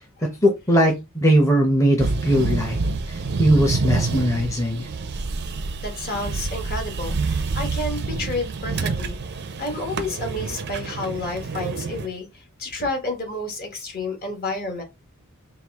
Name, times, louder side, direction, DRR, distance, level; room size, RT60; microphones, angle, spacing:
voice 1, 0.4-2.8 3.4-4.9, equal, 15° left, 0.7 m, -19 dB
sound 1, 2.0-12.1, right 4 dB, 50° right, 0.5 m, -27 dB
voice 2, 5.8-9.2 9.6-12.3 12.6-14.8, left 2 dB, 45° left, 1.3 m, -30 dB
4.5 x 2.4 x 3.5 m
head